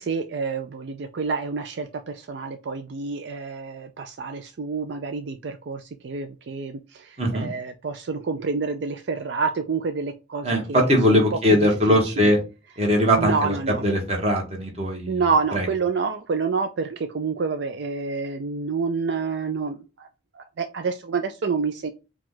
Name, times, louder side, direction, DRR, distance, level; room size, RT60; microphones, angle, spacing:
voice 1, 0.0-12.3 13.2-13.8 15.1-20.1 20.3-21.9, right 4 dB, 70° right, 7 dB, 0.4 m, -28 dB
voice 2, 7.2-7.5 10.4-12.4 12.8-13.5 13.8-15.2 15.5-15.7, equal, 35° right, 1 dB, 1.3 m, -20 dB
4.8 x 2.3 x 3.8 m, 0.29 s
head